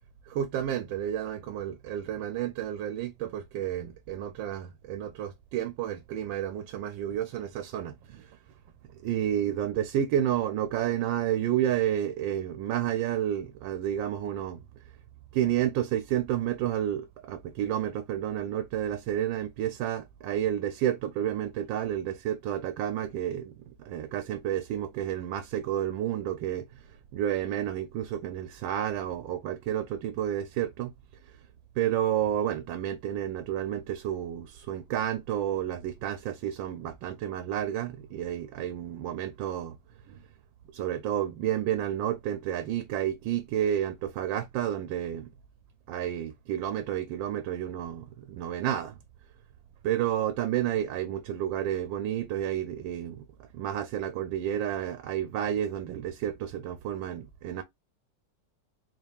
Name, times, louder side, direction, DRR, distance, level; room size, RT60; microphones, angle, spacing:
voice 1, 0.3-8.3 9.0-14.6 15.3-23.5 23.8-26.7 27.1-30.9 31.8-39.8 40.1-40.2 40.7-45.3 45.9-49.0 49.8-53.2 53.5-57.6, right 11 dB, 85° right, 1.3 m, -30 dB
4.2 x 2.4 x 3.3 m
omnidirectional pair, 2.0 m